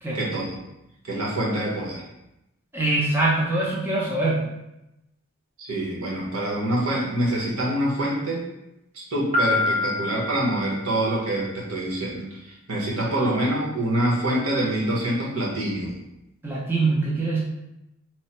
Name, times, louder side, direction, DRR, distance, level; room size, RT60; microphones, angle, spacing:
voice 1, 0.1-0.6 1.0-2.0 5.6-8.4 8.9-16.0, right 1 dB, 80° right, -4 dB, 1.0 m, -26 dB
voice 2, 2.7-4.5 16.4-17.4, right 2 dB, 10° right, -6 dB, 0.5 m, -23 dB
Piano, 9.3-11.2, left 3 dB, 30° right, 0.9 m, -26 dB
3.2 x 2.0 x 4.2 m, 0.89 s
head